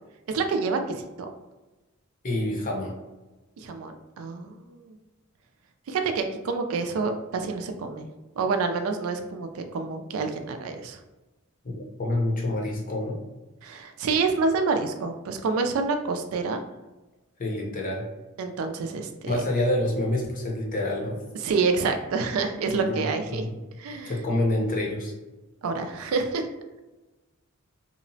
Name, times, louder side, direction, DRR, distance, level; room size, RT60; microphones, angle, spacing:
voice 1, 0.3-1.3 3.6-5.0 5.9-8.0 8.4-11.0 13.6-16.6 18.4-19.4 21.4-23.4 23.8-24.1 25.6-26.4, right 4 dB, 90° right, 6 dB, 0.3 m, -28 dB
voice 2, 2.2-2.9 11.6-11.7 12.0-13.2 17.4-18.0 19.3-21.2 22.7-23.6 24.1-25.1, left 1 dB, 40° left, -1 dB, 0.6 m, -27 dB
2.8 x 2.0 x 2.6 m, 1.1 s
head